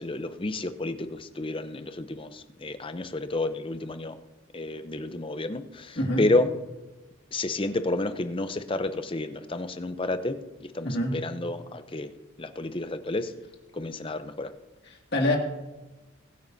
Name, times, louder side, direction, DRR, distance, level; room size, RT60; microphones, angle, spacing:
voice 1, 0.0-4.2 4.5-6.5 7.3-12.1 12.4-13.3 13.7-14.5, left 2 dB, 25° left, 10 dB, 0.6 m, -30 dB
voice 2, 10.8-11.1 15.1-15.4, left 1 dB, 50° left, 1 dB, 2.2 m, -25 dB
21.5 x 9.4 x 2.7 m, 1.1 s
head